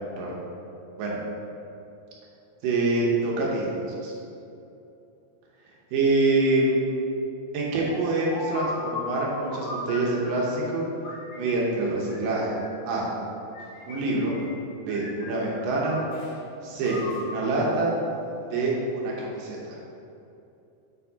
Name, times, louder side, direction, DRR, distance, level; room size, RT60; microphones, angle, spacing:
voice 1, 2.6-4.1 5.9-7.1 7.5-10.9 11.4-12.6 12.9-13.1 13.9-14.4 14.9-16.0 16.6-18.0 18.5-19.9, right 2 dB, 75° right, -3 dB, 2.2 m, -26 dB
sound 1, 7.8-10.6 11.0-12.8 13.5-14.6 14.9-16.3 16.8-18.6, left 2 dB, 65° left, 2.5 m, -38 dB
6.7 x 6.7 x 2.8 m, 2.8 s
omnidirectional pair, 4.6 m